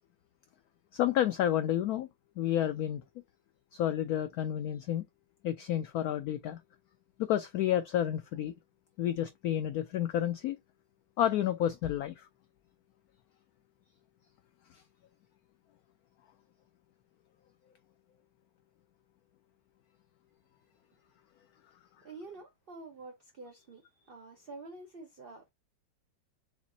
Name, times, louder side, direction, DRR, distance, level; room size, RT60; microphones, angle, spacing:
voice 1, 0.9-2.1 2.4-3.0 3.7-5.0 5.4-6.6 7.2-8.5 9.0-10.6 11.2-12.3, left 11 dB, 75° left, 0.8 m, -30 dB
voice 2, 22.0-23.8 24.1-25.5, right 3 dB, 55° right, 0.6 m, -48 dB
7.1 x 2.5 x 2.7 m
omnidirectional pair, 2.1 m